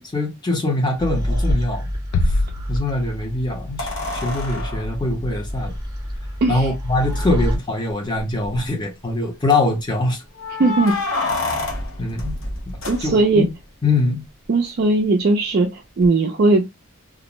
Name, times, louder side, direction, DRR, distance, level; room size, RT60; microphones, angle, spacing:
voice 1, 0.0-1.9 2.2-2.4 2.7-5.7 6.5-10.2 12.0-12.4 13.0-13.4 13.8-14.2, left 2 dB, 20° left, 0.6 m, -23 dB
sound 1, 1.0-7.6, equal, 20° right, 0.7 m, -28 dB
sound 2, 2.1-3.8, left 2 dB, 85° left, 0.3 m, -24 dB
sound 3, 3.8-6.2 7.1-7.2 7.5-7.6 8.2-8.7 10.4-13.5 16.0-16.1, left 2 dB, 60° left, 0.8 m, -28 dB
voice 2, 6.4-6.7 10.6-11.0 12.9-13.4 14.5-16.6, right 3 dB, 50° right, 0.4 m, -18 dB
2.5 x 2.0 x 2.9 m
head